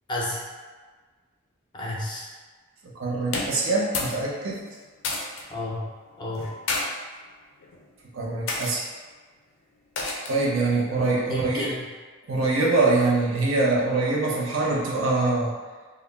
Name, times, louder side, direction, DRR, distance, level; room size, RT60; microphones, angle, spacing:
voice 1, 0.1-0.5 1.7-2.3 5.5-6.5 11.3-11.9, left 1 dB, 20° left, -4 dB, 0.4 m, -31 dB
voice 2, 3.0-4.6 8.1-8.8 10.3-11.7 12.3-15.5, right 3 dB, 80° right, -3 dB, 0.6 m, -24 dB
sound 1, 3.2-4.2 4.5-5.4 6.3-6.8 7.6-7.9 8.5-8.7 10.0-10.4, left 3 dB, 85° left, 0.4 m, -30 dB
2.2 x 2.1 x 3.3 m, 1.4 s
head